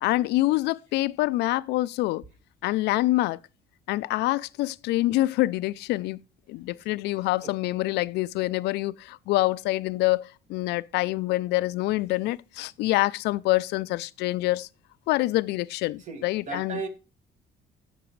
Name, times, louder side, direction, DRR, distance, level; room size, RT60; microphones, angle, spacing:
voice 1, 0.0-2.2 2.6-3.4 3.9-6.2 6.5-14.7 15.1-16.8, left 18 dB, 80° left, 0.4 m, -26 dB
voice 2, 7.2-7.6 16.0-16.9, right 5 dB, 45° right, 2.0 m, -37 dB
16.5 x 6.0 x 3.1 m
cardioid pair, 110°, 17 cm